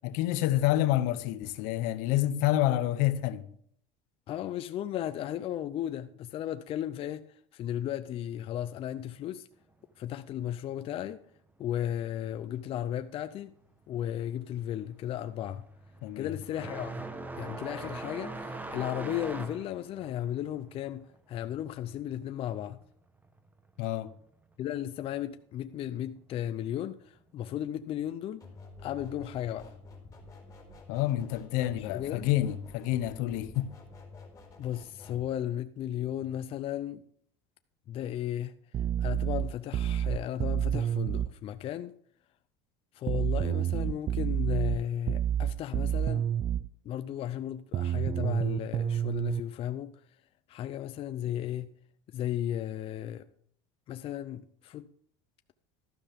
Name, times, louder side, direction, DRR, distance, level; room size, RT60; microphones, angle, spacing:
voice 1, 0.0-3.4 16.0-16.3 23.8-24.1 30.9-33.7, left 14 dB, 70° left, 0.9 m, -28 dB
voice 2, 4.3-9.5 10.0-11.2 11.6-13.5 13.9-15.6 16.2-17.0 17.4-22.8 24.6-28.5 28.8-29.7 31.8-32.3 34.6-37.0 37.9-38.5 39.0-42.0 42.9-46.3 46.8-49.9 50.5-51.7 52.1-53.3 53.9-54.9, left 11 dB, 40° left, 0.5 m, -35 dB
sound 1, 13.9-14.3 14.6-22.9 23.2-24.2 25.2-25.3 26.1-26.2 28.0-28.1, right 2 dB, 10° right, 1.1 m, -41 dB
sound 2, 28.4-35.3, left 3 dB, 20° left, 4.2 m, -49 dB
sound 3, 38.7-41.3 43.1-46.7 47.7-49.4, right 10 dB, 35° right, 0.4 m, -29 dB
12.5 x 12.0 x 3.6 m
supercardioid pair, 120°, 14 cm